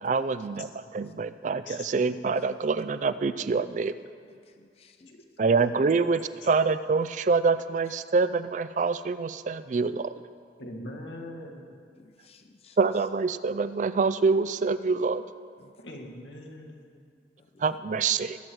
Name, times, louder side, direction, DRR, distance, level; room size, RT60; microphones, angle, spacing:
voice 1, 0.0-3.9 5.4-10.1 12.8-15.2 17.6-18.4, right 4 dB, 45° right, 0.4 m, -26 dB
voice 2, 4.3-5.2 9.8-9.9 12.0-12.8 15.6-15.7 17.4-17.7, left 4 dB, 35° left, 0.5 m, -58 dB
voice 3, 5.1-5.5 10.6-11.7 15.8-16.9, left 1 dB, 90° left, 1.8 m, -42 dB
21.0 x 7.9 x 4.7 m
head